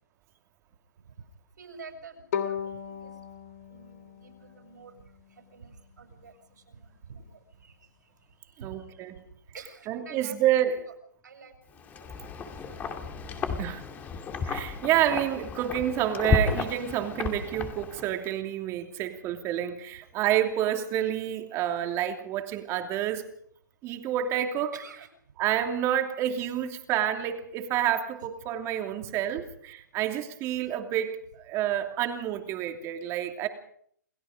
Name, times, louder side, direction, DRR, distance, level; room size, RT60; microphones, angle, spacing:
voice 1, 1.6-3.2 3.7-5.0 5.3-7.8 8.4-9.0 9.5-10.4 10.6-10.9 11.2-12.1 12.4-13.4 24.7-25.1 29.1-29.7 31.9-32.1, right 5 dB, 70° right, 6.9 m, -48 dB
Bowed string instrument, 2.3-5.4, left 8 dB, 55° left, 3.2 m, -36 dB
voice 2, 8.6-9.1 9.9-10.8 13.6-13.8 14.4-23.3 23.8-24.7 25.4-33.5, right 11 dB, 25° right, 2.9 m, -28 dB
Wind, 11.8-18.3, left 5 dB, 15° left, 2.5 m, -32 dB
29.0 x 17.5 x 5.2 m
hypercardioid pair, 135°, 10 cm